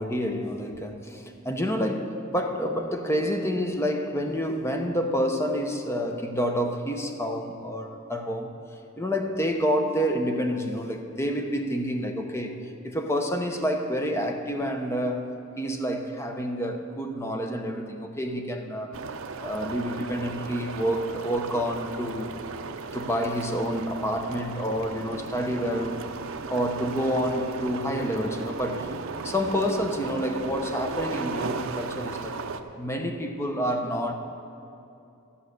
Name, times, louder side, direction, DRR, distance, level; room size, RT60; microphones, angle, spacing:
voice 1, 0.0-8.5 9.0-19.0 19.4-22.4 22.9-26.1 26.5-28.9 29.2-32.4 32.8-34.1, equal, 10° left, 4 dB, 0.7 m, -28 dB
sound 1, 18.9-32.6, right 4 dB, 65° right, 0.5 m, -36 dB
13.0 x 5.6 x 8.0 m, 2.7 s
head